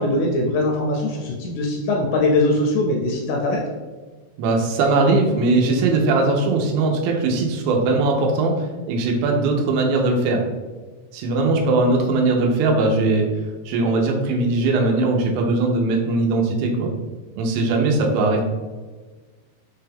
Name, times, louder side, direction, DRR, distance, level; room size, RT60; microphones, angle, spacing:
voice 1, 0.0-3.6, left 2 dB, 85° left, 0 dB, 2.3 m, -21 dB
voice 2, 4.4-10.4 11.1-13.3 13.7-16.9 17.4-18.4, right 3 dB, 90° right, 1 dB, 3.0 m, -20 dB
6.7 x 2.2 x 3.4 m, 1.3 s
omnidirectional pair, 5.0 m